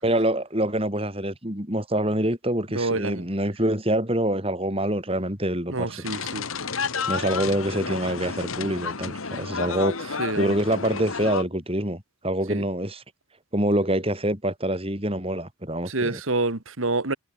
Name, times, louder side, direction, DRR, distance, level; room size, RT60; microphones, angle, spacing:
voice 1, 0.0-6.0 7.1-13.0 13.5-16.2, right 1 dB, 25° right, 6.2 m, -26 dB
voice 2, 2.7-3.2 5.7-6.5 10.2-10.5 12.5-12.6 15.8-17.1, right 2 dB, 75° right, 2.1 m, -27 dB
sound 1, 6.0-11.4, left 5 dB, 85° left, 1.8 m, -31 dB
head